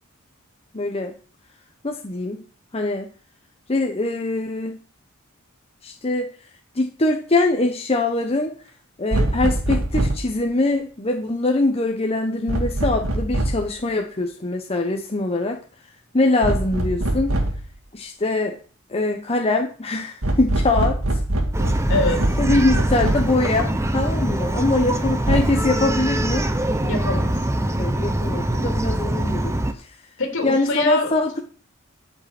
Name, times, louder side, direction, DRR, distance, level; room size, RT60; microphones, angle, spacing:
voice 1, 0.7-1.1 1.8-2.4 2.7-3.1 3.7-4.8 5.8-6.3 6.7-8.5 9.0-15.6 16.1-17.3 17.9-18.6 18.9-21.2 22.4-26.5 27.8-29.5 30.4-31.3, left 2 dB, 30° left, 3 dB, 1.1 m, -23 dB
sound 1, 9.1-10.3 12.5-13.7 16.4-17.7 20.2-23.4 25.3-25.4, right 1 dB, 75° right, 2.1 m, -23 dB
Bark, 21.5-29.7, right 1 dB, 15° right, 1.0 m, -23 dB
voice 2, 21.9-22.4 26.8-27.4 30.2-31.1, left 3 dB, 65° left, 3 dB, 3.6 m, -24 dB
13.5 x 6.0 x 6.0 m, 0.39 s
head